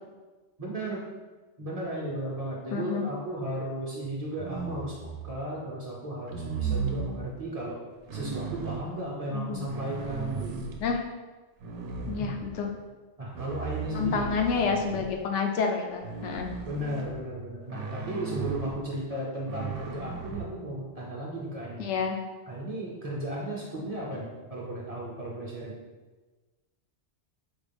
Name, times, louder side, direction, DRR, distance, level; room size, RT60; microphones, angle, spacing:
voice 1, 0.6-1.0 1.6-5.0 5.2-7.8 8.1-10.5 11.9-12.3 13.2-14.3 16.7-21.9 22.5-25.7, right 1 dB, 40° right, -4 dB, 0.6 m, -35 dB
voice 2, 2.7-3.0 9.3-9.6 10.8-11.0 12.1-12.7 13.9-16.5 21.8-22.2, left 5 dB, 85° left, 2 dB, 0.9 m, -29 dB
sound 1, 4.4-5.4 6.3-7.2 8.1-8.9 9.5-10.9 11.6-12.7 13.3-15.2 16.0-17.1 17.7-18.8 19.5-20.5, right 5 dB, 85° right, 0.9 m, -35 dB
4.5 x 2.3 x 3.3 m, 1.3 s
omnidirectional pair, 1.2 m